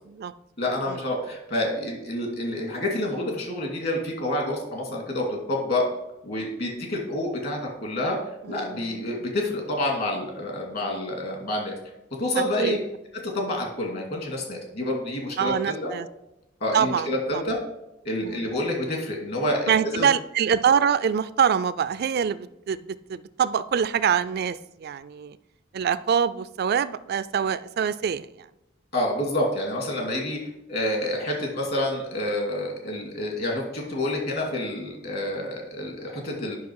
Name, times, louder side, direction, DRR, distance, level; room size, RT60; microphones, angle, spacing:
voice 1, 0.6-5.8 6.2-8.2 8.5-11.7 12.2-12.8 13.3-15.9 16.6-17.6 18.0-20.1 28.9-30.4 30.7-36.6, left 1 dB, 55° left, 1 dB, 2.5 m, -28 dB
voice 2, 8.4-9.1 12.6-12.8 15.4-16.1 16.7-17.4 18.2-18.4 19.7-25.4 25.7-28.5, right 7 dB, 55° right, 15 dB, 0.4 m, -25 dB
9.2 x 5.7 x 4.7 m, 0.87 s
head